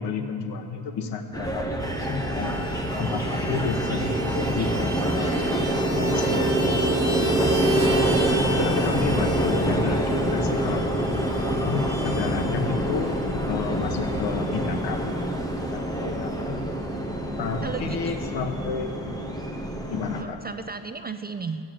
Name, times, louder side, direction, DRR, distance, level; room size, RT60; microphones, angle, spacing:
voice 1, 0.0-2.7 3.0-7.8 8.5-13.1 13.5-16.6 16.9-17.1 17.4-19.4 19.9-20.4, left 5 dB, 65° left, 5 dB, 1.3 m, -32 dB
sound 1, 1.3-20.2, equal, 10° left, 1.0 m, -26 dB
Vehicle horn car horn honking, 1.8-15.7 16.0-16.1 16.4-16.6 16.8-17.5, right 2 dB, 5° right, 1.5 m, -32 dB
voice 2, 17.6-18.2 20.0-21.7, right 5 dB, 20° right, 8 dB, 0.4 m, -37 dB
14.0 x 9.5 x 9.2 m, 2.5 s
cardioid pair, 140°, 46 cm